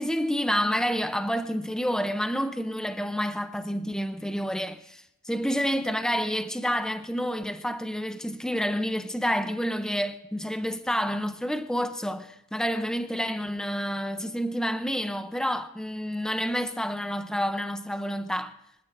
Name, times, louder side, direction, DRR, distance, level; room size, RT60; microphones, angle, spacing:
voice 1, 0.0-18.5, equal, 5° left, 0.5 m, -29 dB
24.0 x 15.5 x 2.6 m
head